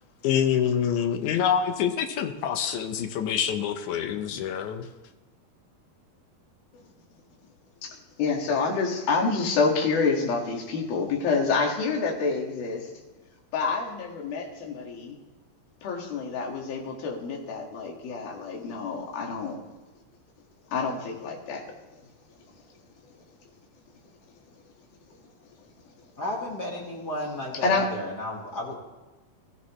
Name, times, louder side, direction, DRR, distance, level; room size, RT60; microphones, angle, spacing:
voice 1, 0.2-4.9, left 8 dB, 85° left, 6 dB, 1.7 m, -26 dB
voice 2, 7.8-12.9 13.5-15.2 15.8-19.6 20.7-21.6 27.6-27.9, left 4 dB, 70° left, 0 dB, 3.8 m, -27 dB
voice 3, 26.2-28.8, left 1 dB, 40° left, -3 dB, 1.5 m, -33 dB
22.5 x 13.5 x 3.2 m, 1.1 s
omnidirectional pair, 4.5 m